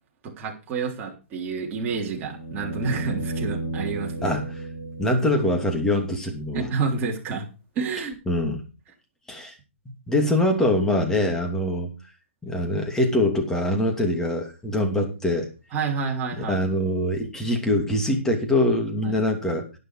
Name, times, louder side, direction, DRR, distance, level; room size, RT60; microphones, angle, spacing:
voice 1, 0.2-4.3 6.5-7.5 7.8-8.2 15.7-16.7 19.0-19.2, right 5 dB, 25° right, 0 dB, 3.4 m, -29 dB
sound 1, 1.6-5.7 8.1-8.2, right 2 dB, 30° left, 3.7 m, -33 dB
voice 2, 4.2-4.6 5.0-6.7 8.3-8.6 9.3-9.5 10.1-11.9 12.4-15.5 16.4-19.7, left 1 dB, 5° left, 3 dB, 2.8 m, -23 dB
11.5 x 10.5 x 4.8 m, 0.31 s
hypercardioid pair, 145°, 7 cm